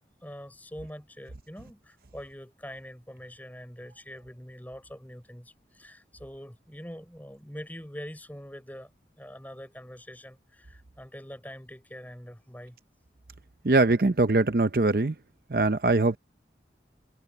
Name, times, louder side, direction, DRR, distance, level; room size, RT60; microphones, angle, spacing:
voice 1, 0.2-8.9 9.2-12.8, equal, 10° left, 4.7 m, -44 dB
voice 2, 13.6-15.1 15.5-16.2, right 2 dB, 55° right, 0.7 m, -22 dB
head